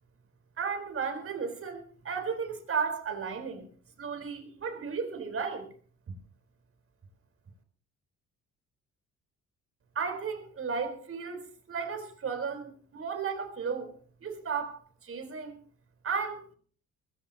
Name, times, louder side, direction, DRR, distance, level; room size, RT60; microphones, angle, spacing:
voice 1, 0.6-3.6 4.0-5.7 9.9-13.9 14.2-15.6 16.0-16.5, right 5 dB, 45° right, 6 dB, 4.2 m, -34 dB
20.5 x 16.0 x 2.9 m, 0.43 s
cardioid pair, 90°, 30 cm